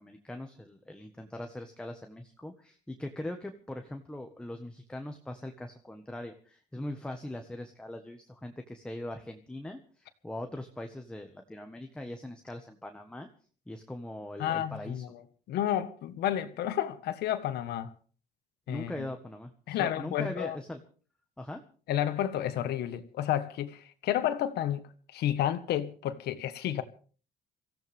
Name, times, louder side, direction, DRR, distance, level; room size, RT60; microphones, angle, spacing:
voice 1, 0.0-13.3 13.7-15.0 18.7-20.8 21.4-21.6, left 1 dB, 5° left, 1.5 m, -41 dB
voice 2, 14.4-15.2 15.5-17.9 18.7-19.0 19.7-20.6 21.9-24.8 25.1-26.8, left 11 dB, 75° left, 1.6 m, -31 dB
24.0 x 15.5 x 3.6 m
cardioid pair, 110°, 17 cm